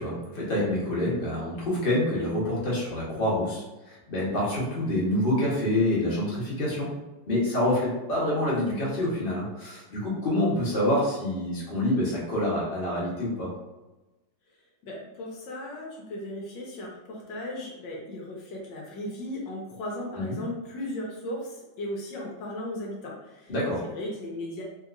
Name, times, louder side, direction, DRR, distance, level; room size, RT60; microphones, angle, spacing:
voice 1, 0.0-6.9 7.3-13.5 20.1-20.4 23.5-23.8, left 1 dB, 35° left, -6 dB, 1.0 m, -27 dB
voice 2, 14.8-23.5 23.9-24.6, left 1 dB, 80° left, -3 dB, 1.3 m, -36 dB
3.5 x 2.8 x 2.5 m, 1.1 s
omnidirectional pair, 2.0 m